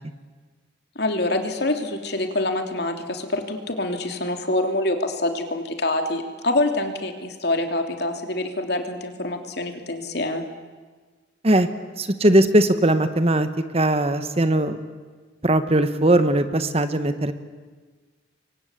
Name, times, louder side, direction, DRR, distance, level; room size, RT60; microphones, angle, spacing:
voice 1, 0.9-10.4, left 2 dB, 60° left, 5 dB, 3.1 m, -26 dB
voice 2, 12.0-14.8 15.4-17.3, right 1 dB, 35° right, 10 dB, 1.4 m, -19 dB
29.0 x 23.5 x 8.4 m, 1.4 s
head